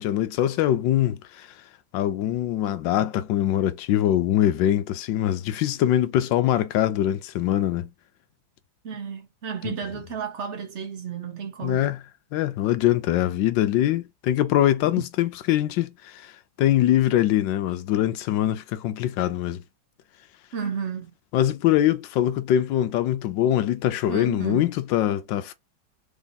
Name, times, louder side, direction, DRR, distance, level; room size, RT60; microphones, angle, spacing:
voice 1, 0.0-1.5 1.9-7.9 9.6-9.7 11.6-12.0 12.3-16.3 16.6-19.6 21.3-25.5, left 12 dB, 75° left, 1.2 m, -23 dB
voice 2, 8.8-11.9 20.5-21.1 24.1-24.7, right 6 dB, 55° right, 0.8 m, -32 dB
3.6 x 3.5 x 4.0 m
omnidirectional pair, 2.1 m